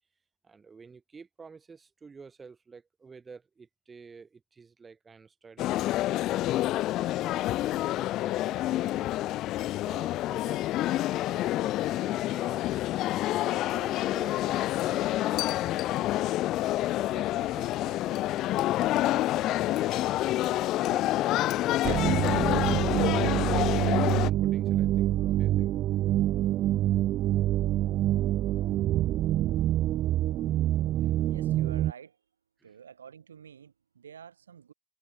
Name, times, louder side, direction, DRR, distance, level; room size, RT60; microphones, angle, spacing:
voice 1, 0.4-9.1 9.8-12.8 13.3-16.2 16.7-20.0 20.3-22.0 22.3-22.7 23.1-25.7 26.8-26.9 27.8-27.9, right 5 dB, 25° right, 6.1 m, -51 dB
sound 1, 5.6-24.3, left 15 dB, 50° left, 0.5 m, -28 dB
sound 2, 21.8-31.9, right 13 dB, 45° right, 0.6 m, -26 dB
voice 2, 31.0-32.3 32.6-34.7, right 8 dB, 80° right, 5.8 m, -49 dB
figure-of-eight pair, 65°, 0 cm